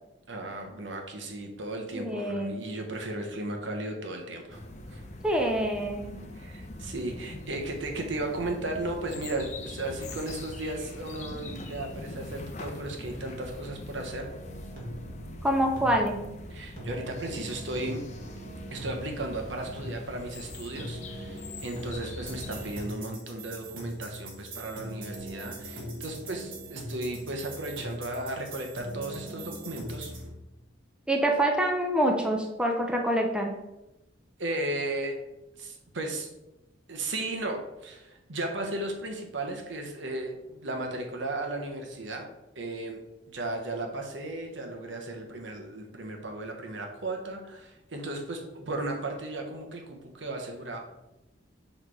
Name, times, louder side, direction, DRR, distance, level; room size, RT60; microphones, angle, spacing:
voice 1, 0.3-4.6 4.9-5.0 6.3-14.3 16.5-18.0 18.7-30.2 34.4-35.1 35.6-36.3 36.9-42.3 42.5-43.0 43.3-50.8, right 2 dB, 70° right, 3 dB, 1.1 m, -35 dB
voice 2, 1.9-2.6 5.2-6.2 15.4-16.2 31.1-33.6, right 1 dB, 5° right, 1 dB, 0.6 m, -26 dB
sound 1, 4.5-22.9, left 1 dB, 40° left, 0.6 m, -43 dB
sound 2, 14.3-30.3, right 1 dB, 50° right, 1.7 m, -41 dB
6.5 x 3.3 x 4.7 m, 0.95 s
head